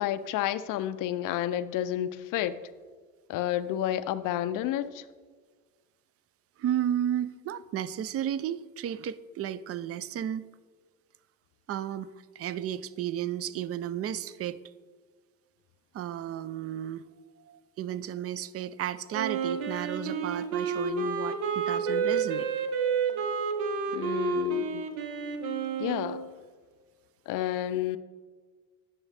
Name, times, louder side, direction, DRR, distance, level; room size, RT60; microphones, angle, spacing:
voice 1, 0.0-2.6 3.3-5.0 23.9-24.8 25.8-26.2 27.3-28.0, left 12 dB, 60° left, 0.4 m, -30 dB
voice 2, 6.6-10.4 11.7-12.1 12.4-14.6 15.9-17.1 17.5-22.5, right 10 dB, 40° right, 0.4 m, -33 dB
Wind instrument woodwind instrument, 19.1-26.2, right 5 dB, 75° right, 1.0 m, -30 dB
9.8 x 6.3 x 3.3 m
supercardioid pair, 80°, 37 cm